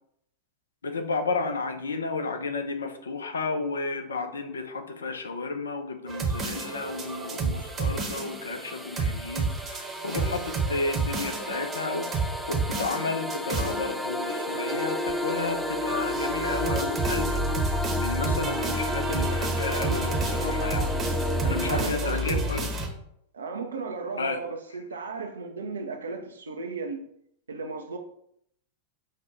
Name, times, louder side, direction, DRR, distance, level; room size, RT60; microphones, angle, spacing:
voice 1, 0.8-20.9 21.4-22.6 24.2-24.4, left 3 dB, 70° left, 7 dB, 0.5 m, -32 dB
sound 1, 6.1-22.9, right 2 dB, 25° right, 0.8 m, -30 dB
sound 2, 6.3-21.9, left 1 dB, ahead, 0.4 m, -33 dB
voice 2, 21.4-22.5 23.3-27.1 27.5-28.0, right 4 dB, 70° right, 4 dB, 0.4 m, -35 dB
5.3 x 2.2 x 3.7 m, 0.72 s
figure-of-eight pair, 90°, 0 cm